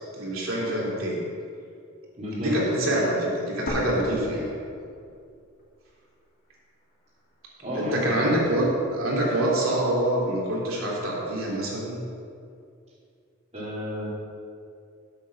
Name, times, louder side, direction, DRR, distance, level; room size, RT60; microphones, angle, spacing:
voice 1, 0.2-1.2 2.4-4.5 7.7-12.0, right 1 dB, 80° right, -4 dB, 2.8 m, -25 dB
voice 2, 2.2-2.5 7.6-8.2 13.5-14.1, equal, 35° right, -12 dB, 2.4 m, -32 dB
sound 1, 3.7-5.6 5.9-6.0 6.7-7.7, left 1 dB, 45° left, 2.2 m, -36 dB
8.2 x 7.4 x 6.2 m, 2.4 s
head